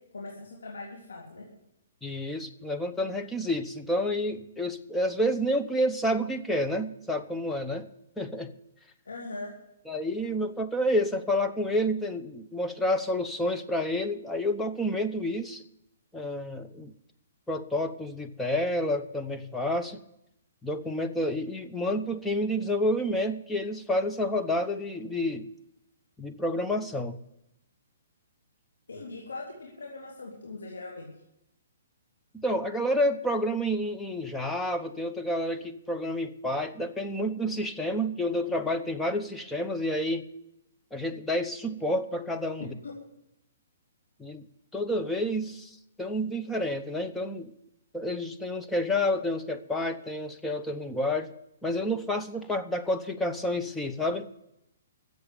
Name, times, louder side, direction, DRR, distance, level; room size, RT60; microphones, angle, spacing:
voice 1, 0.1-1.4 9.0-9.5 28.9-31.1 42.6-42.9, left 3 dB, 85° left, -2 dB, 3.4 m, -40 dB
voice 2, 2.0-7.9 8.2-8.5 9.9-15.6 16.1-16.9 17.5-20.0 20.6-25.5 26.2-27.2 32.3-40.2 40.9-42.7 44.2-44.4 44.7-47.5 47.9-51.3 51.6-54.3, left 1 dB, 5° left, 5 dB, 0.9 m, -29 dB
14.0 x 8.0 x 8.7 m, 0.82 s
hypercardioid pair, 140°, 0 cm